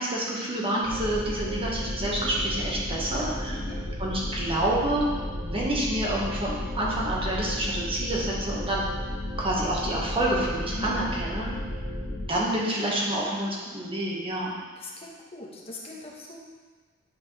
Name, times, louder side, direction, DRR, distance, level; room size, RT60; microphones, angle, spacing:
voice 1, 0.0-3.6 4.0-5.1 5.4-8.8 9.4-11.5 12.3-14.5, right 1 dB, 25° right, -4 dB, 1.5 m, -28 dB
sound 1, 0.8-12.2, left 1 dB, 70° right, 2.3 m, -33 dB
voice 2, 2.2-2.5 3.5-3.8 10.8-11.0 12.6-12.9 14.8-16.4, left 1 dB, 30° left, -3 dB, 1.3 m, -41 dB
10.0 x 5.0 x 3.3 m, 1.5 s
head